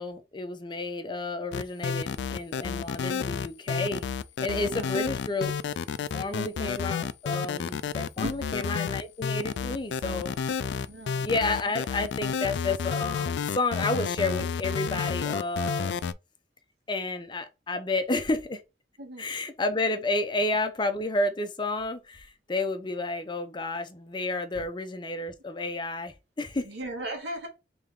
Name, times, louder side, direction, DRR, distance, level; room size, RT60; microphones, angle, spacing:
voice 1, 0.0-4.0 4.4-5.6 6.1-10.4 11.2-16.0 16.9-18.6 19.2-26.7, left 2 dB, 25° left, 0.6 m, -31 dB
sound 1, 1.5-16.1, left 6 dB, 75° left, 0.3 m, -30 dB
voice 2, 4.5-4.9 6.6-6.7 8.2-8.5 10.8-11.3 19.0-19.3 26.6-27.5, right 1 dB, 70° right, 1.6 m, -37 dB
3.5 x 3.4 x 3.6 m
head